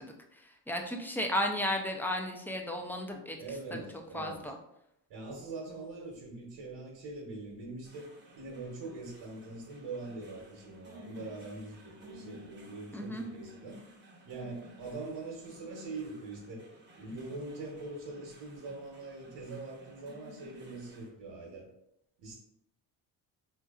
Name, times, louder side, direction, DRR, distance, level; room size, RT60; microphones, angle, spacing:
voice 1, 0.0-3.4 3.7-3.8 4.1-4.6 12.9-13.3, left 1 dB, 5° left, 2 dB, 0.5 m, -34 dB
voice 2, 3.4-4.4 5.1-8.1 8.4-13.8 14.2-16.6 17.0-21.7 22.2-22.3, right 3 dB, 70° right, -2 dB, 1.0 m, -43 dB
sound 1, 7.8-21.1, equal, 25° right, 0.8 m, -55 dB
4.4 x 2.7 x 2.4 m, 0.81 s
supercardioid pair, 75°, 43 cm